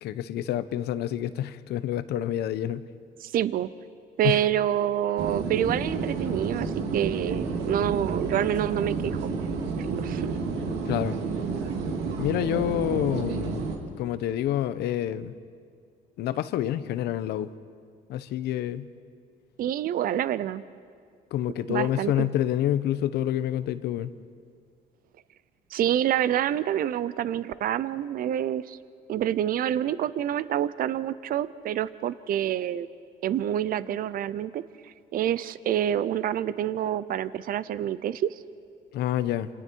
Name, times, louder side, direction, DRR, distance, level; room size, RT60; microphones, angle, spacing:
voice 1, 0.0-2.8 4.2-4.4 10.8-11.2 12.2-13.7 14.0-15.3 16.2-17.5 18.1-18.9 21.3-24.1 38.9-39.5, left 12 dB, 75° left, 13 dB, 1.0 m, -28 dB
voice 2, 3.2-3.7 4.2-9.2 9.5-10.3 19.6-20.6 21.7-22.3 25.7-28.8 29.1-32.9 33.2-38.4, right 11 dB, 60° right, 16 dB, 0.7 m, -27 dB
sound 1, 5.2-13.8, right 4 dB, 85° right, 2.8 m, -30 dB
28.5 x 27.5 x 4.7 m, 2.2 s
cardioid pair, 110°, 17 cm